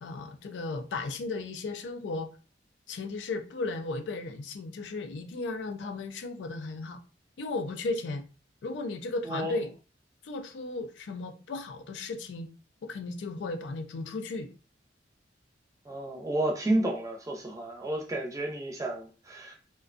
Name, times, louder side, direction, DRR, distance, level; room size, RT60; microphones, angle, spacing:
voice 1, 0.0-2.3 2.9-7.0 7.4-8.3 8.6-9.7 10.2-12.5 12.8-14.5, left 3 dB, 75° left, 0.4 m, -35 dB
voice 2, 15.9-19.5, right 1 dB, 20° right, 0.5 m, -31 dB
2.4 x 2.2 x 2.4 m
head